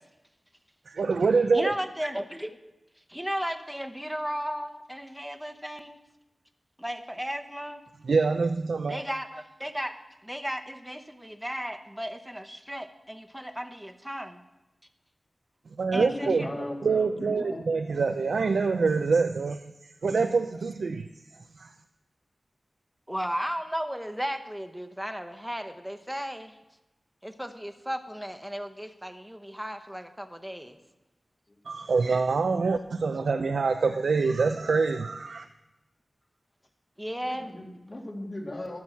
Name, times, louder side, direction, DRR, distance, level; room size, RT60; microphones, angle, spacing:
voice 1, 0.9-1.7 8.0-9.0 15.8-16.5 16.8-21.1 21.6-21.7 31.7-35.5, right 4 dB, 90° right, 7 dB, 0.5 m, -25 dB
voice 2, 1.5-2.6 3.1-6.0 6.8-7.8 8.9-9.9 10.2-14.4 15.9-16.5 23.1-26.5 27.2-30.8 37.0-37.5, equal, 5° right, 7 dB, 1.0 m, -35 dB
voice 3, 16.0-17.6 31.5-31.6 37.2-38.8, left 1 dB, 40° left, 2 dB, 2.2 m, -37 dB
13.0 x 6.1 x 7.3 m, 1.0 s
wide cardioid pair, 70°, 0 cm